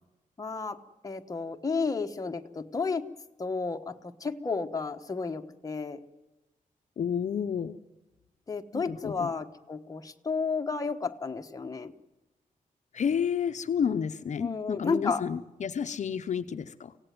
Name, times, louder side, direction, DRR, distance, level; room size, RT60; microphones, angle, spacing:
voice 1, 0.4-3.1 3.4-6.0 8.5-11.9 14.4-15.3, left 4 dB, 25° left, 5 dB, 1.2 m, -32 dB
voice 2, 7.0-7.8 8.7-9.3 12.9-16.9, left 7 dB, 55° left, 9 dB, 0.8 m, -30 dB
25.0 x 17.0 x 9.4 m, 1.1 s
wide cardioid pair, 160°, 14 cm